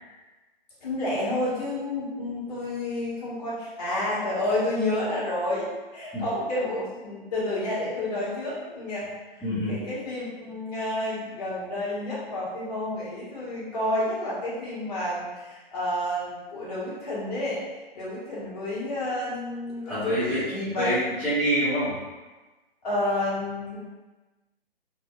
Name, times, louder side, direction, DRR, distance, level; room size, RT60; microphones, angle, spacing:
voice 1, 0.8-9.4 9.7-20.9 22.8-23.8, left 1 dB, 40° left, -8 dB, 1.2 m, -30 dB
voice 2, 9.4-9.7 19.8-20.4 20.8-22.0, equal, ahead, -17 dB, 0.5 m, -26 dB
2.8 x 2.6 x 2.4 m, 1.2 s
figure-of-eight pair, 125°, 30 cm